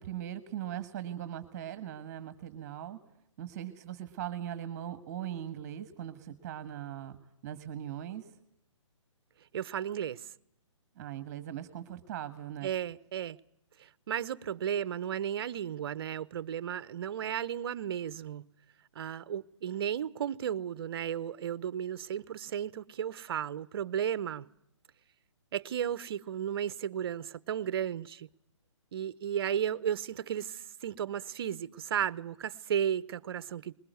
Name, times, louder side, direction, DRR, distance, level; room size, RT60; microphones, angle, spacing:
voice 1, 0.0-3.0 3.4-7.2 7.4-8.2 11.0-12.7, right 11 dB, 35° right, 1.5 m, -40 dB
voice 2, 9.5-10.3 12.6-13.4 13.8-18.4 18.9-24.5 25.5-28.3 28.9-33.7, right 9 dB, 50° right, 0.8 m, -34 dB
21.5 x 17.5 x 9.4 m
hypercardioid pair, 150°, 16 cm